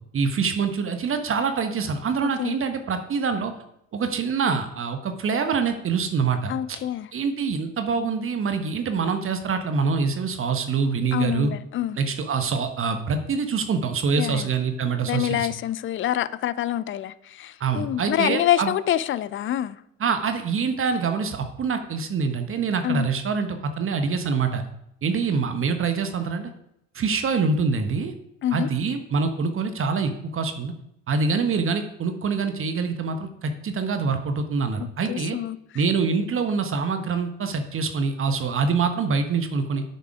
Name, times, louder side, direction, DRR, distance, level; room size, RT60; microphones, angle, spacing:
voice 1, 0.1-3.5 3.9-6.8 7.1-11.5 12.0-15.5 17.6-18.7 20.0-24.6 25.0-26.5 26.9-28.1 28.5-30.7 31.1-35.4 35.7-39.8, right 5 dB, 35° right, 1.2 m, -25 dB
voice 2, 2.2-2.6 6.5-7.1 11.1-12.0 14.2-14.5 15.0-19.8 22.8-23.1 28.4-28.7 34.8-35.6, left 12 dB, 30° left, 0.6 m, -26 dB
9.5 x 7.5 x 4.8 m
figure-of-eight pair, 55°, 38 cm